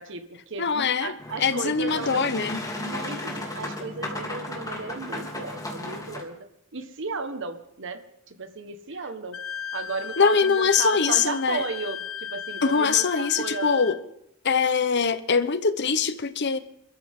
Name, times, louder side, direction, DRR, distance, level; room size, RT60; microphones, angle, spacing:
voice 1, 0.0-2.3 2.8-6.3 6.7-8.0 8.3-9.4 9.7-14.1, right 3 dB, 65° right, 8 dB, 1.5 m, -34 dB
voice 2, 0.6-1.1 1.4-2.6 10.2-11.6 12.6-14.0 14.4-16.6, left 5 dB, 55° left, 13 dB, 1.0 m, -23 dB
Boat Water vehicle, 1.2-6.2, left 1 dB, 15° left, 3.1 m, -35 dB
Wind instrument woodwind instrument, 9.3-14.0, left 8 dB, 85° left, 0.6 m, -35 dB
27.5 x 13.5 x 3.8 m, 0.80 s
head